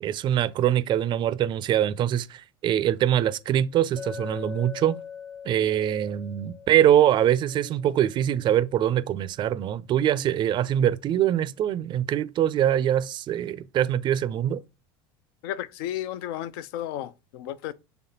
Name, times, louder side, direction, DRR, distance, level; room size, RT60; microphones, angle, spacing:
voice 1, 0.0-5.0 5.4-14.6, right 11 dB, 40° right, 0.4 m, -23 dB
Chink clink, 4.0-8.4, left 7 dB, 50° left, 1.3 m, -42 dB
voice 2, 15.4-17.7, left 12 dB, 75° left, 0.4 m, -33 dB
4.0 x 3.3 x 2.8 m
supercardioid pair, 105°, 12 cm